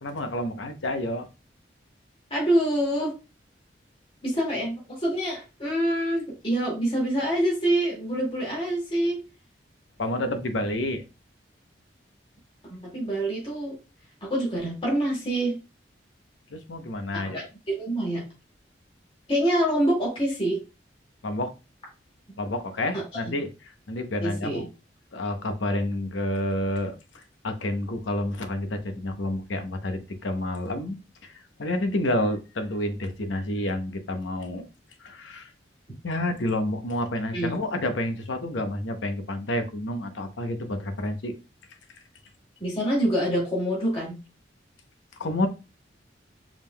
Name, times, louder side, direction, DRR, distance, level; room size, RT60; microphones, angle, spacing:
voice 1, 0.0-1.3 10.0-11.0 16.5-17.5 21.2-21.5 22.4-23.5 23.9-24.7 25.1-31.0 31.2-31.3 31.6-34.7 35.0-35.5 36.0-41.3 45.2-45.5, left 1 dB, 85° left, 7 dB, 0.8 m, -29 dB
voice 2, 2.3-3.1 4.2-9.2 12.7-13.8 14.2-15.6 17.1-18.2 19.3-20.6 24.2-24.6 37.3-37.5 42.6-44.2, right 1 dB, 30° left, -4 dB, 2.1 m, -26 dB
5.0 x 3.5 x 2.2 m, 0.29 s
head